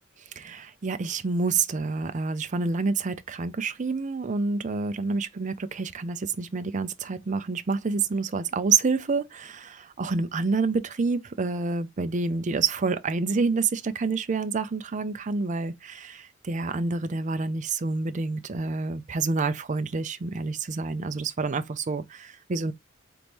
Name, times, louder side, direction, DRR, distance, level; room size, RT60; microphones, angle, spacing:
voice 1, 0.4-22.7, right 4 dB, 40° right, 0.5 m, -28 dB
4.0 x 3.0 x 3.5 m
head